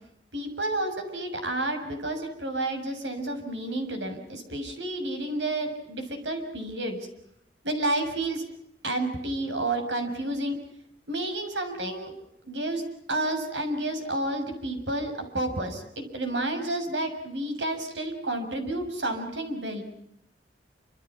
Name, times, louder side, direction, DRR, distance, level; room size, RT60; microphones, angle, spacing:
voice 1, 0.3-7.0 7.6-8.4 8.8-10.6 11.1-12.1 12.4-19.8, right 1 dB, 70° right, 6 dB, 6.8 m, -30 dB
28.5 x 27.0 x 6.1 m, 0.76 s
head